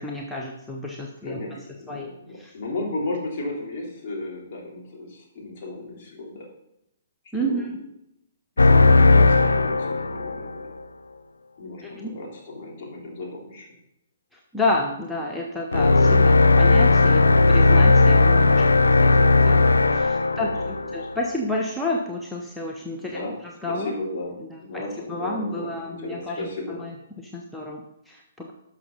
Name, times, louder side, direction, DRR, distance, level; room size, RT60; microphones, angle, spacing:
voice 1, 0.0-1.6 1.9-2.1 2.4-2.5 7.3-7.8 11.8-12.1 14.3-19.7 19.9-23.2 23.6-23.9 25.1-28.5, left 1 dB, 5° left, -2 dB, 1.0 m, -30 dB
voice 2, 1.2-6.5 7.4-7.7 8.6-10.7 11.6-13.7 20.3-20.5 20.8-21.1 23.0-23.4 23.7-26.8, left 2 dB, 45° left, -2 dB, 3.5 m, -34 dB
sound 1, 8.6-10.6 15.7-21.3, left 3 dB, 80° left, 0.5 m, -17 dB
12.0 x 6.1 x 4.1 m, 0.82 s
figure-of-eight pair, 125°, 0 cm